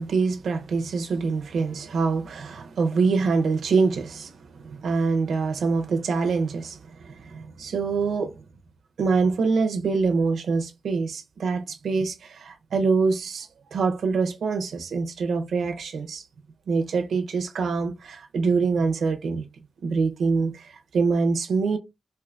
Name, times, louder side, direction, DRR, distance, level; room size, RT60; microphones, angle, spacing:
voice 1, 0.0-8.4 9.0-16.2 16.7-19.4 19.8-21.8, right 4 dB, 90° right, 0.7 m, -25 dB
4.6 x 2.6 x 2.5 m
wide cardioid pair, 155°, 0 cm